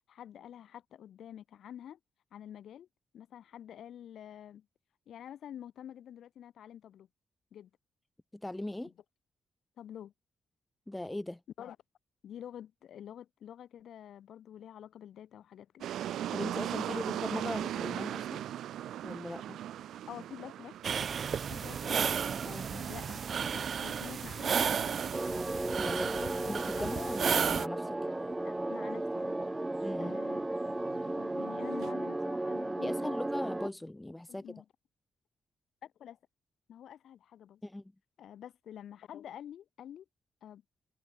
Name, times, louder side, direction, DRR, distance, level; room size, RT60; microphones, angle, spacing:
voice 1, 0.1-2.0 2.3-2.9 3.1-4.7 5.1-7.1 7.5-7.7 8.8-8.9 9.8-10.1 11.6-11.8 12.2-15.9 20.1-20.8 21.5-22.0 22.7-25.0 25.9-26.5 26.8-27.2 28.4-29.4 30.0-30.5 31.2-33.1 34.3-34.7 35.8-36.2 36.7-37.6 38.2-40.1 40.4-40.6, left 10 dB, 75° left, 3.9 m, -48 dB
voice 2, 8.4-8.9 10.9-11.4 16.3-18.4 19.0-19.6 22.4-22.7 25.8-26.1 26.4-28.0 29.8-30.2 32.8-34.4 37.6-37.8, left 1 dB, 10° left, 1.0 m, -39 dB
sound 1, 15.8-31.9, right 11 dB, 90° right, 2.3 m, -41 dB
sound 2, 20.8-27.7, right 7 dB, 50° right, 0.3 m, -33 dB
sound 3, 25.1-33.7, right 2 dB, 10° right, 0.9 m, -35 dB
cardioid pair, 135°, 0 cm